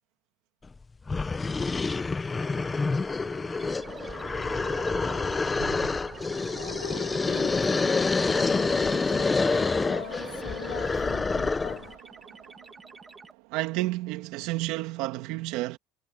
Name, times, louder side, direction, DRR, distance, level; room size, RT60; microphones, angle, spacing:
sound 1, 0.7-0.8 1.1-11.9, left 4 dB, 15° left, 0.7 m, -27 dB
Train, 2.3-14.6, right 22 dB, 90° right, 2.9 m, -46 dB
sound 2, 3.5-13.3, right 3 dB, 15° right, 2.4 m, -50 dB
voice 1, 6.5-12.0, left 24 dB, 90° left, 3.1 m, -42 dB
voice 2, 13.5-15.8, right 18 dB, 65° right, 2.4 m, -30 dB
cardioid pair, 155°, 0 cm